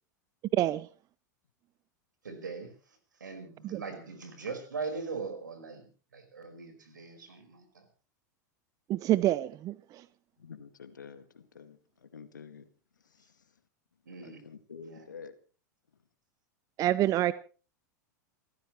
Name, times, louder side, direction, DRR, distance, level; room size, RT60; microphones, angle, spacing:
voice 1, 0.5-0.9 3.6-3.8 8.9-10.0 16.8-17.3, right 14 dB, 35° right, 0.7 m, -27 dB
voice 2, 2.2-2.7 3.2-5.9 6.1-7.8 14.0-14.4 14.9-15.0, right 4 dB, 80° right, 5.1 m, -40 dB
voice 3, 10.4-12.7 13.0-13.5 14.2-15.4, left 6 dB, 80° left, 2.1 m, -49 dB
28.5 x 15.0 x 3.2 m
figure-of-eight pair, 90°, 10 cm